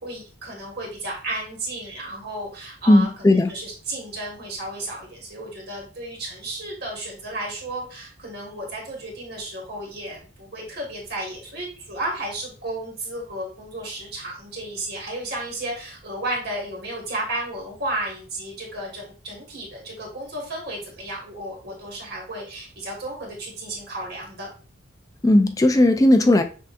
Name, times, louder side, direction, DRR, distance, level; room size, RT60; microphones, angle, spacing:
voice 1, 0.0-3.1 3.5-24.5, right 1 dB, 50° right, 1.5 m, -33 dB
voice 2, 2.9-3.5 25.2-26.4, left 1 dB, 15° left, 0.3 m, -16 dB
6.2 x 2.7 x 2.4 m
head